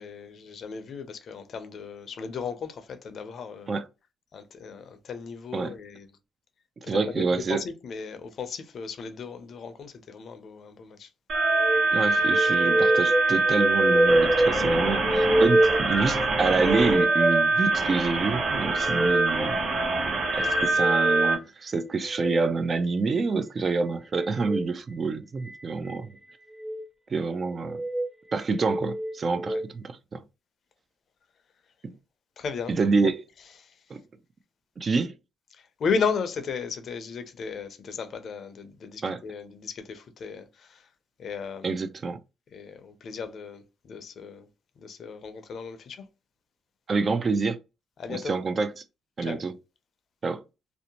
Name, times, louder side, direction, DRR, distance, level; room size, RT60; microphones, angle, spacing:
voice 1, 0.0-3.8 4.3-6.1 6.8-11.1 29.5-29.6 32.4-33.1 33.6-33.8 35.5-40.9 41.2-41.7 42.5-44.5 44.8-46.1 48.0-48.4 49.2-49.4, left 5 dB, 60° left, 0.5 m, -35 dB
voice 2, 6.9-7.6 11.9-19.6 20.3-26.1 27.1-27.8 28.3-30.2 31.8-31.9 32.7-33.2 33.9-34.0 34.8-35.1 39.0-39.2 41.6-42.2 46.9-47.6 48.1-48.7 49.2-49.5 50.2-50.4, right 4 dB, 40° right, 0.3 m, -27 dB
sound 1, 11.3-21.3 22.0-22.3 24.3-24.6 25.5-26.0 26.5-26.8 27.6-28.1 28.6-29.6, right 1 dB, 20° right, 0.8 m, -26 dB
sound 2, 11.3-21.3, right 3 dB, 65° right, 0.8 m, -24 dB
2.6 x 2.1 x 2.8 m
cardioid pair, 90°, 0 cm